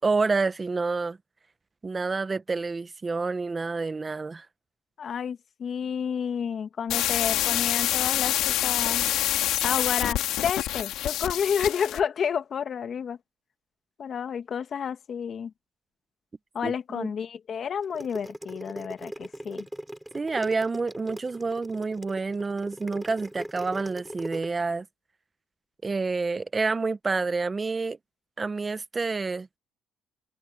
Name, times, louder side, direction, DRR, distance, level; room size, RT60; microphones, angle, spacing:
voice 1, 0.0-1.2 1.8-4.5 16.6-17.1 20.1-24.9 25.8-28.0 28.4-29.5, right 4 dB, 25° right, 1.1 m, -28 dB
voice 2, 5.0-9.1 9.6-13.2 14.0-15.5 16.5-19.7, left 7 dB, 50° left, 2.0 m, -30 dB
sound 1, 6.9-12.0, left 13 dB, 75° left, 3.3 m, -26 dB
sound 2, 17.8-24.5, equal, 5° right, 4.5 m, -39 dB
supercardioid pair, 80°, 0 cm